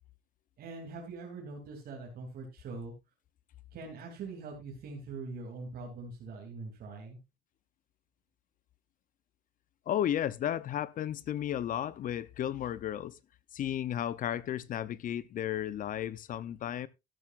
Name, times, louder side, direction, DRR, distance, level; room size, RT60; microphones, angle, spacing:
voice 1, 0.6-2.9 3.7-7.2, right 3 dB, 60° right, 2.9 m, -43 dB
voice 2, 9.9-13.2 13.5-16.9, left 11 dB, 55° left, 0.6 m, -33 dB
12.5 x 11.5 x 2.5 m
cardioid pair, 110°, 17 cm